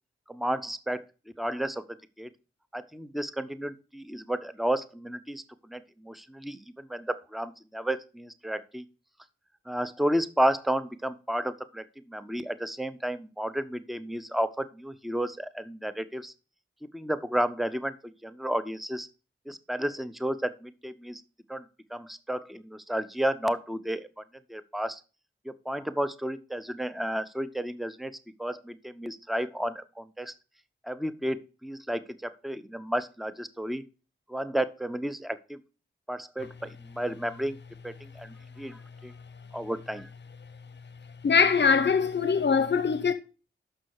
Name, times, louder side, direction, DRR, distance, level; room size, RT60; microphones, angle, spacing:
voice 1, 0.3-1.1 1.4-2.3 2.7-8.8 9.7-16.3 16.9-19.1 19.5-21.2 21.5-21.7 21.9-24.1 24.5-25.0 25.4-28.1 28.4-30.3 30.8-33.8 34.3-35.6 36.1-37.6 37.8-39.1 39.5-40.1, right 1 dB, ahead, 0.8 m, -32 dB
voice 2, 41.2-43.1, left 6 dB, 55° left, 0.7 m, -22 dB
6.3 x 6.2 x 4.7 m
cardioid pair, 45°, 21 cm